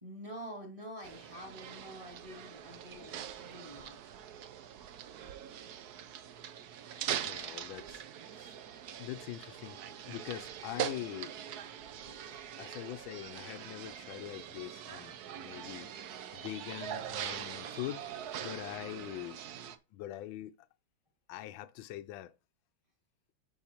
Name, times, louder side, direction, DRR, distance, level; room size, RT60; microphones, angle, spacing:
voice 1, 0.0-4.0, equal, 15° right, 2.3 m, -47 dB
sound 1, 1.0-19.8, right 9 dB, 65° right, 1.1 m, -42 dB
voice 2, 6.9-8.0 8.3-8.6 9.0-9.8 10.1-11.3 12.1-15.9 16.3-18.1 18.4-19.4 19.9-20.5 21.3-22.3, left 14 dB, 85° left, 1.4 m, -43 dB
11.0 x 4.4 x 3.0 m
omnidirectional pair, 2.2 m